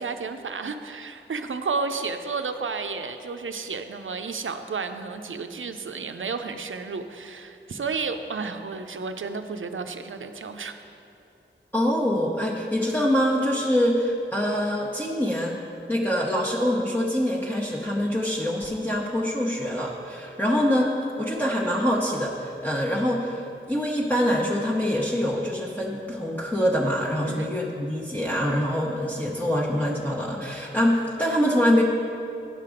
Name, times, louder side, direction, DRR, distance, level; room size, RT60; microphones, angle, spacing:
voice 1, 0.0-10.7 27.3-27.5, right 4 dB, 80° right, 7 dB, 0.5 m, -32 dB
voice 2, 11.7-15.6 15.9-31.8, equal, 10° left, -5 dB, 1.0 m, -25 dB
10.5 x 5.8 x 5.0 m, 2.7 s
wide cardioid pair, 45°, 20 cm